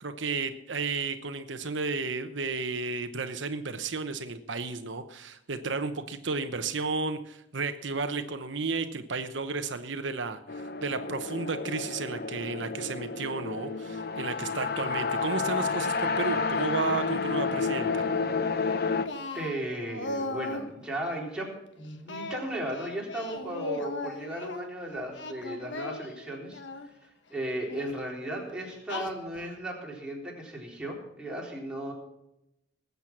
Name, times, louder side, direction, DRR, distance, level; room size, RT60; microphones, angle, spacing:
voice 1, 0.0-18.1, right 4 dB, 75° right, 9 dB, 0.9 m, -33 dB
sound 1, 10.5-19.1, left 4 dB, 55° left, 0.8 m, -30 dB
Singing, 19.1-20.7 22.1-24.6 25.1-26.9 27.7-27.9 28.9-29.5, left 2 dB, 70° left, 1.4 m, -37 dB
voice 2, 19.3-26.6 27.3-31.9, right 1 dB, 5° right, -3 dB, 3.9 m, -36 dB
19.5 x 8.2 x 6.0 m, 0.85 s
head